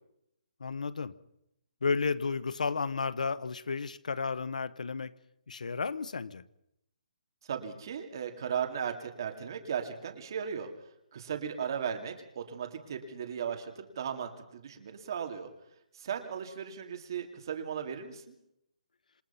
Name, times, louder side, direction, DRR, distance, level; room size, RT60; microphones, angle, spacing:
voice 1, 0.6-1.1 1.8-5.1 5.5-6.4, left 4 dB, 75° left, 16 dB, 1.1 m, -32 dB
voice 2, 7.5-10.7 11.1-15.5 16.0-18.3, right 7 dB, 30° right, 5 dB, 2.4 m, -36 dB
27.5 x 18.5 x 5.7 m, 0.82 s
hypercardioid pair, 180°, 4 cm